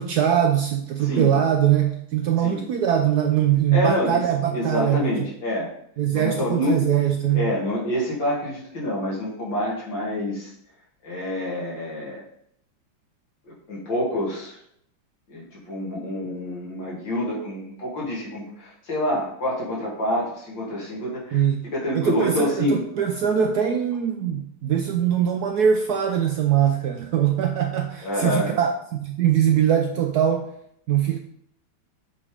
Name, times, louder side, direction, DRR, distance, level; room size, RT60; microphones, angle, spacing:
voice 1, 0.0-5.2 6.0-7.5 21.3-21.6 21.9-30.5 30.9-31.2, right 9 dB, 70° right, 5 dB, 0.9 m, -22 dB
voice 2, 3.7-4.2 4.5-5.7 6.1-7.0 7.3-10.5 11.0-12.2 13.7-14.6 15.3-22.8 28.0-28.6, left 1 dB, 70° left, -5 dB, 2.9 m, -27 dB
7.9 x 3.6 x 4.9 m, 0.70 s
omnidirectional pair, 2.2 m